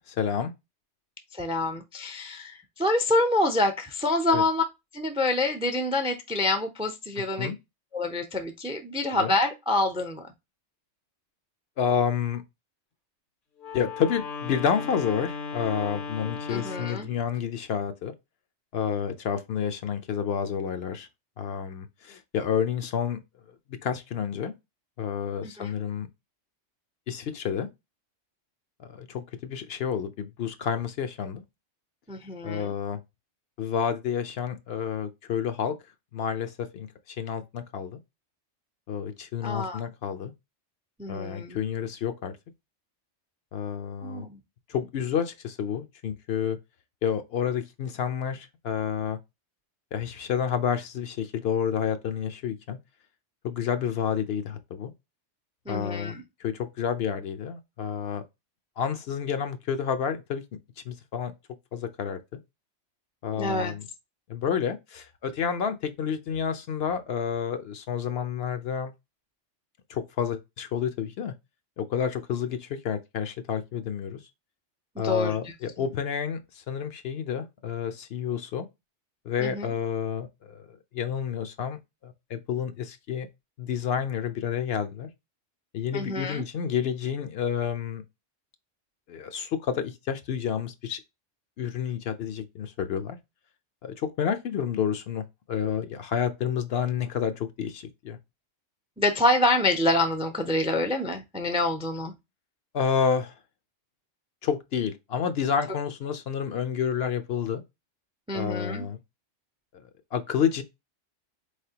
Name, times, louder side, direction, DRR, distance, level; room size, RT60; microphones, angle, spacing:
voice 1, 0.2-0.5 4.3-4.4 7.4-7.6 9.2-9.3 11.8-12.4 13.7-18.1 18.7-21.1 21.4-23.2 23.8-24.5 25.0-26.1 27.1-27.7 28.8-31.4 32.4-33.0 33.6-35.7 36.1-38.0 38.9-40.3 41.1-42.4 43.5-44.3 44.7-46.6 47.0-49.2 49.9-52.8 53.4-54.9 55.7-56.1 56.4-58.2 58.8-60.4 60.9-61.3 61.7-62.2 63.2-63.8 64.3-68.9 69.9-71.3 71.8-74.2 75.0-78.7 79.3-83.3 83.6-85.1 85.7-88.0 89.1-91.0 91.6-93.2 93.8-98.2 102.7-103.3 104.4-107.6 108.3-109.0 110.1-110.6, left 7 dB, 65° left, 0.8 m, -29 dB
voice 2, 1.3-4.6 4.9-7.5 7.9-10.3 16.5-17.1 25.4-25.7 32.1-32.7 39.4-39.8 41.0-41.6 44.0-44.4 55.7-56.2 63.4-63.7 75.0-75.9 79.4-79.7 85.9-86.4 99.0-102.1 108.3-108.8, left 2 dB, 10° right, 0.3 m, -27 dB
Wind instrument woodwind instrument, 13.6-17.1, left 5 dB, 85° left, 1.8 m, -36 dB
4.1 x 3.3 x 2.8 m
omnidirectional pair, 1.2 m